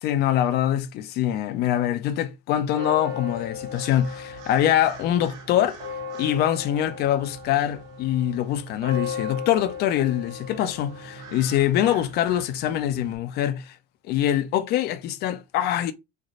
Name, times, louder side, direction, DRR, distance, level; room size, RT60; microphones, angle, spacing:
voice 1, 0.0-5.8 6.2-13.7 14.1-15.9, left 11 dB, 35° left, 0.5 m, -24 dB
sound 1, 2.7-13.2, left 4 dB, 55° right, 1.5 m, -37 dB
3.2 x 2.6 x 3.8 m
supercardioid pair, 155°, 30 cm